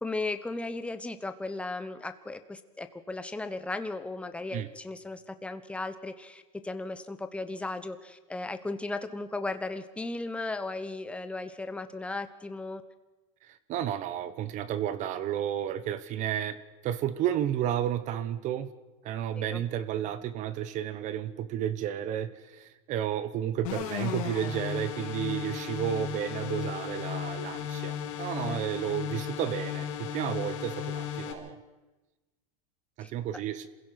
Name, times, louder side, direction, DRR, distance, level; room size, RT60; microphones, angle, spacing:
voice 1, 0.0-12.8 19.3-19.6 28.4-28.6 33.0-33.1, left 2 dB, 5° left, 10 dB, 1.2 m, -36 dB
voice 2, 13.5-16.6 16.8-18.7 19.0-31.6 33.0-33.7, right 10 dB, 45° right, 14 dB, 1.2 m, -32 dB
sound 1, 23.6-31.3, left 9 dB, 70° left, 4.6 m, -35 dB
27.5 x 16.0 x 5.9 m, 1.2 s
supercardioid pair, 130°, 18 cm